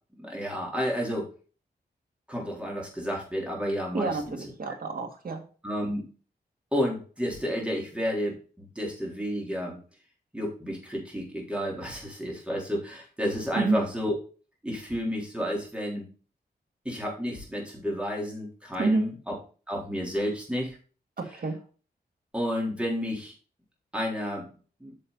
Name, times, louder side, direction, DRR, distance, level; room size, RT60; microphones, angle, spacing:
voice 1, 0.2-1.3 2.3-4.4 5.6-6.0 6.7-9.8 10.3-14.1 14.6-16.1 16.8-19.3 19.7-20.8 22.3-23.3 23.9-24.5 24.8-24.9, equal, 5° right, -2 dB, 4.0 m, -31 dB
voice 2, 3.9-5.4 13.6-13.8 18.8-19.0 21.2-21.6, right 3 dB, 60° right, 4 dB, 2.2 m, -28 dB
8.8 x 6.7 x 4.1 m, 0.38 s
wide cardioid pair, 145°, 17 cm